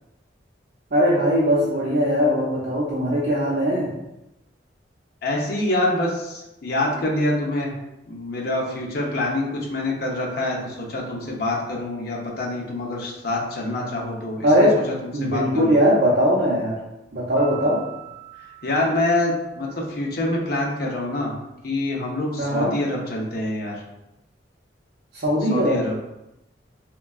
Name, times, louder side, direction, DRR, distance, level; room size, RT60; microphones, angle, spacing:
voice 1, 0.9-3.9 14.4-14.8 15.1-16.8 17.1-17.8 22.4-22.7 25.1-25.8, equal, 60° right, -9 dB, 0.6 m, -20 dB
voice 2, 5.2-7.7 8.1-14.7 15.0-15.7 18.6-21.3 21.6-23.8 25.5-25.9, left 1 dB, 55° left, -2 dB, 0.6 m, -26 dB
Piano, 17.4-19.9, right 8 dB, 15° right, 1.2 m, -42 dB
3.6 x 2.2 x 2.3 m, 0.90 s
head